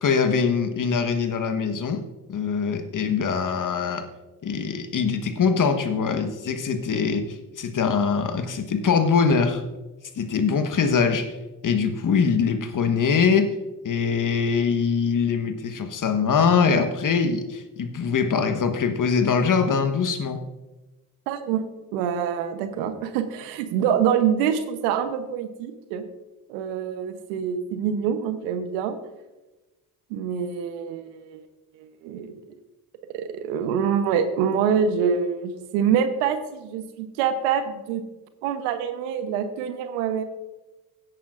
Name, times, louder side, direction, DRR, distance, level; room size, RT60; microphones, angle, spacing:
voice 1, 0.0-2.0 2.3-4.1 4.4-9.6 10.2-11.4 11.6-13.5 13.8-20.4, left 5 dB, 45° left, 8 dB, 1.4 m, -23 dB
voice 2, 21.3-21.7 21.9-26.0 26.5-29.0 30.1-31.4 31.8-32.4 33.1-38.0 38.4-40.2, right 7 dB, 80° right, 9 dB, 1.1 m, -25 dB
16.5 x 9.1 x 2.6 m, 1.1 s
hypercardioid pair, 45°, 44 cm